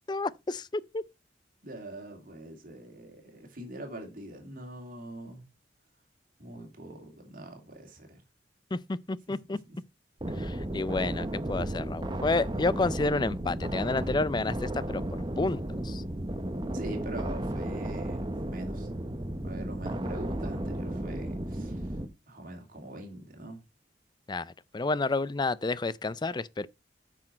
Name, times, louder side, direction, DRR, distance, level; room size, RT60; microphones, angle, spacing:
voice 1, 0.1-1.0 8.7-9.6 10.4-15.0 15.4-16.0 24.3-26.7, left 3 dB, 25° left, 0.4 m, -30 dB
voice 2, 1.6-5.4 6.4-8.2 9.3-9.8 16.7-18.9 19.4-22.0 22.3-23.6, right 1 dB, 50° right, 2.9 m, -43 dB
sound 1, 10.2-22.1, right 1 dB, 25° right, 1.0 m, -34 dB
9.0 x 6.2 x 4.2 m
head